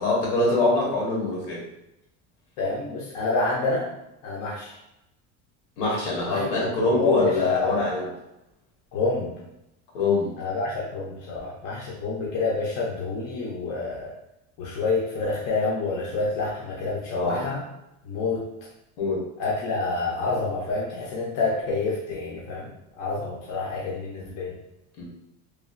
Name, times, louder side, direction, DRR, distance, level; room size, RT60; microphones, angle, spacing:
voice 1, 0.0-1.6 5.8-8.1 9.9-10.3 17.1-17.5 19.0-19.2 25.0-25.1, left 2 dB, 90° left, -3 dB, 1.3 m, -24 dB
voice 2, 2.6-3.9 4.2-4.8 6.3-7.8 8.9-9.3 10.4-14.1 14.6-17.6 18.0-18.4 19.4-22.7 23.0-24.6, left 3 dB, 60° left, -5 dB, 0.7 m, -28 dB
3.1 x 2.3 x 2.5 m, 0.86 s
cardioid pair, 150°, 35 cm